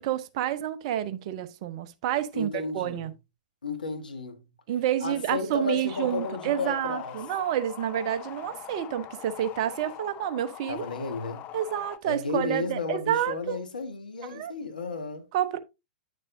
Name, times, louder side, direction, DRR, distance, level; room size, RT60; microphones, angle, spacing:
voice 1, 0.0-3.1 4.7-10.8 11.5-13.6 14.2-14.5 15.3-15.6, right 11 dB, 50° right, 0.9 m, -29 dB
voice 2, 2.3-3.0 3.6-4.4 5.0-7.2 10.7-11.4 12.0-15.3, left 4 dB, 80° left, 1.6 m, -33 dB
sound 1, 5.9-12.0, left 12 dB, 35° left, 0.6 m, -43 dB
9.6 x 6.6 x 2.7 m
figure-of-eight pair, 105°, 5 cm